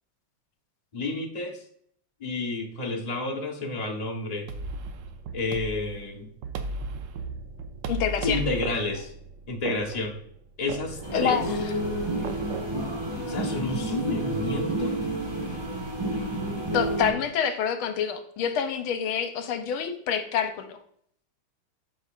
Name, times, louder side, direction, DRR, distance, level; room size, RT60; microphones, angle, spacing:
voice 1, 0.9-1.6 2.2-4.5 5.3-6.3 8.2-9.1 9.5-10.2 10.6-11.4 13.3-15.0, left 2 dB, 25° left, -1 dB, 0.8 m, -30 dB
sound 1, 4.5-12.8, right 3 dB, 70° right, 1.2 m, -36 dB
voice 2, 7.9-8.4 11.1-11.6 16.7-20.8, left 7 dB, 80° left, 6 dB, 1.6 m, -27 dB
sound 2, 11.0-17.1, right 1 dB, 15° right, 1.5 m, -30 dB
12.0 x 5.4 x 2.5 m, 0.66 s
omnidirectional pair, 2.3 m